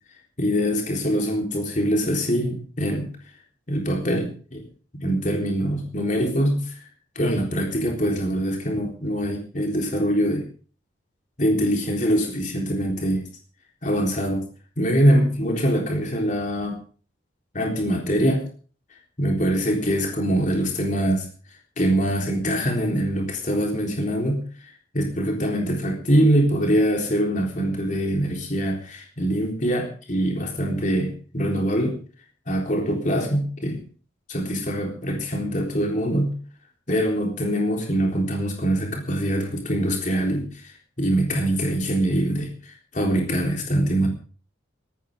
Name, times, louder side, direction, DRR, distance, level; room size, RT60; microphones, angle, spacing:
voice 1, 0.4-3.1 3.7-4.6 4.9-6.8 7.2-10.5 11.4-13.3 13.8-14.4 14.8-16.8 17.5-18.4 19.2-21.3 21.8-24.5 24.9-32.0 32.5-33.8 34.3-36.4 36.9-40.7 41.0-44.1, equal, 40° left, 1 dB, 3.8 m, -23 dB
18.5 x 15.5 x 3.7 m, 0.40 s
head